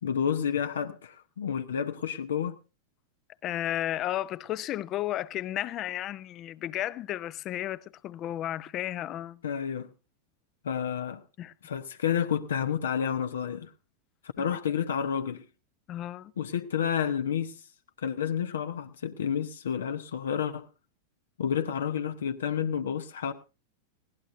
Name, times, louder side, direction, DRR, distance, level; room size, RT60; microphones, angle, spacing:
voice 1, 0.0-2.6 9.4-9.9 10.6-11.2 11.6-13.7 14.4-15.4 16.4-17.6 18.0-20.7 21.4-23.3, left 8 dB, 65° left, 0.8 m, -30 dB
voice 2, 3.4-9.4 11.4-11.5 15.9-16.3, left 13 dB, 35° left, 0.6 m, -33 dB
20.5 x 16.5 x 2.6 m
figure-of-eight pair, 90°, 0 cm